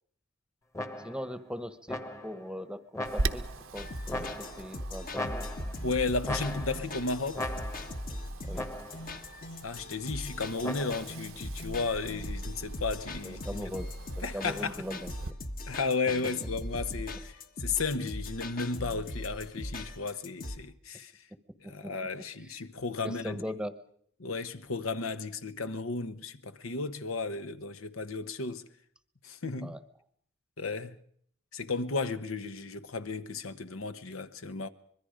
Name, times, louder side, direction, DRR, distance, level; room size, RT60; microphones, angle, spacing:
sound 1, 0.7-1.3 1.9-2.5 2.9-3.6 4.1-4.7 5.1-5.9 6.2-7.0 7.3-8.1 8.5-9.1 10.6-11.2, left 1 dB, 15° left, 1.2 m, -38 dB
voice 1, 1.0-3.4 3.7-5.5 8.5-8.7 13.2-13.9 14.2-15.3 21.6-21.9 22.4-22.6 23.0-23.7 29.6-29.8, equal, 5° right, 1.0 m, -40 dB
Wind, 3.0-15.3, right 2 dB, 75° right, 0.9 m, -41 dB
sound 2, 3.8-20.6, left 1 dB, 45° left, 1.3 m, -40 dB
voice 2, 5.8-7.6 9.6-13.6 14.2-14.8 15.7-21.2 21.6-23.4 24.2-28.6 29.2-29.8 30.6-31.0 31.5-34.7, left 4 dB, 85° left, 1.1 m, -34 dB
25.0 x 22.0 x 5.1 m
head